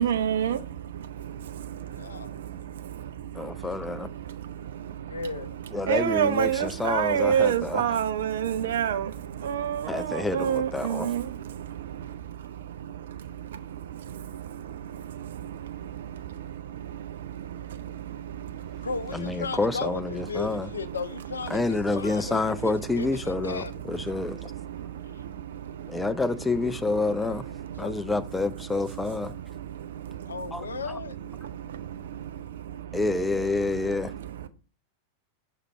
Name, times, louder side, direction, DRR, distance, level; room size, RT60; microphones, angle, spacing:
voice 1, 0.0-5.3 5.8-18.9 21.5-22.3 23.4-23.5 23.8-26.1 27.0-28.1 28.9-30.8 31.4-33.0 33.7-34.5, right 9 dB, 60° right, 0.5 m, -31 dB
voice 2, 1.9-2.3 5.1-5.6 18.8-23.8 25.1-25.2 27.8-28.0 30.3-31.2, left 5 dB, 70° left, 0.4 m, -35 dB
voice 3, 3.3-4.1 5.7-7.9 9.9-11.1 19.1-20.7 21.5-24.5 25.9-27.4 27.8-29.3 30.5-30.6 32.9-34.1, left 3 dB, 10° left, 0.4 m, -28 dB
6.6 x 3.6 x 4.3 m
figure-of-eight pair, 90°, 0 cm